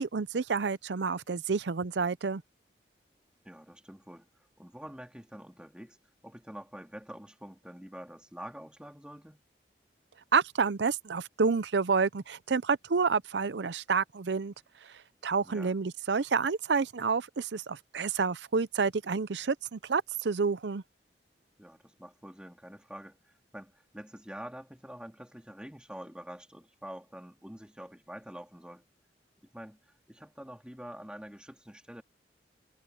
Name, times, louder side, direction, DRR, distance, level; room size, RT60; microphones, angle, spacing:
voice 1, 0.0-2.4 10.3-14.5 15.2-20.8, right 5 dB, 80° right, 0.6 m, -29 dB
voice 2, 3.4-6.0 6.2-9.4 15.4-15.8 21.6-28.8 29.5-29.8 30.1-32.0, equal, 5° right, 2.8 m, -46 dB
head